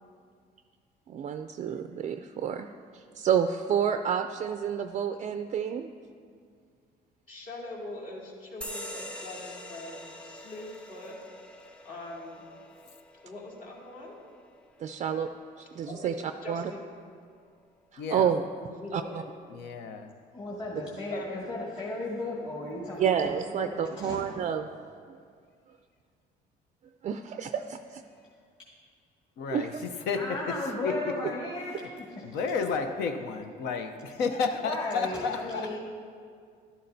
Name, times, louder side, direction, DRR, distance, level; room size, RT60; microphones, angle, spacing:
voice 1, 1.1-2.7 3.2-5.9 14.8-15.3 15.8-16.1 16.5-16.7 18.1-18.4 18.9-19.2 23.0-24.7 27.0-28.0 29.5-29.7, right 8 dB, 45° right, 7 dB, 0.4 m, -29 dB
voice 2, 7.3-11.2 11.8-12.4 13.2-14.1 15.6-16.1 16.4-16.9 18.7-19.3 21.1-21.3, left 2 dB, 50° left, -3 dB, 2.2 m, -42 dB
sound 1, 8.6-15.7, left 1 dB, 5° left, 0.8 m, -45 dB
voice 3, 18.0-18.4 19.5-20.1 29.4-31.1 31.6-31.9 32.2-35.8, left 5 dB, 80° left, 6 dB, 0.7 m, -32 dB
voice 4, 20.3-24.4 30.1-32.3 34.6-35.8, left 2 dB, 30° left, -6 dB, 1.8 m, -35 dB
11.5 x 11.0 x 2.7 m, 2.2 s
cardioid pair, 110°, 17 cm